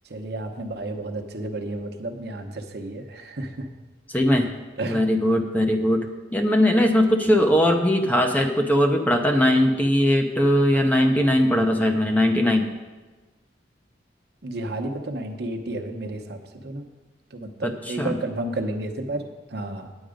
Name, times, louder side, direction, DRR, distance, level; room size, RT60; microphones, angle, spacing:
voice 1, 0.1-3.7 4.8-5.0 7.4-7.5 8.0-8.2 14.4-16.4 16.6-16.8 17.3-19.2 19.5-19.9, right 2 dB, 60° right, 4 dB, 1.0 m, -31 dB
voice 2, 4.1-4.5 4.9-12.7 17.6-18.2, left 1 dB, 10° left, 4 dB, 0.6 m, -20 dB
9.0 x 8.9 x 5.1 m, 1.3 s
head